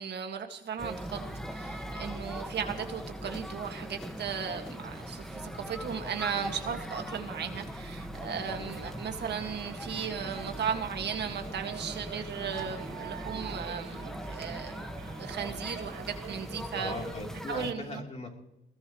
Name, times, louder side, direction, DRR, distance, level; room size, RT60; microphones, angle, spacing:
voice 1, 0.0-14.8 15.2-16.9 17.5-18.0, right 7 dB, 60° right, 5 dB, 1.9 m, -36 dB
sound 1, 0.8-17.7, equal, ahead, 1.5 m, -40 dB
sound 2, 8.0-17.1, right 8 dB, 90° right, 4.1 m, -47 dB
voice 2, 16.8-18.4, left 2 dB, 35° left, 1 dB, 3.4 m, -39 dB
21.0 x 19.0 x 3.1 m, 0.94 s
cardioid pair, 90°, 20 cm